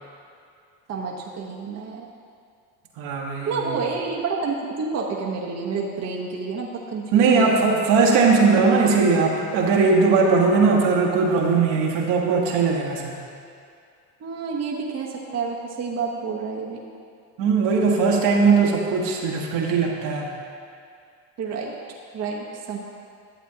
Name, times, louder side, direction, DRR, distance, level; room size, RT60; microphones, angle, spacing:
voice 1, 0.9-2.1 3.5-7.5 14.2-16.8 18.5-18.7 21.4-21.7 22.1-22.8, right 5 dB, 35° right, -2 dB, 1.0 m, -29 dB
voice 2, 3.0-3.8 7.1-13.1 17.4-20.3, right 4 dB, 65° right, -1 dB, 1.4 m, -19 dB
11.0 x 7.3 x 2.8 m, 2.4 s
supercardioid pair, 90°, 46 cm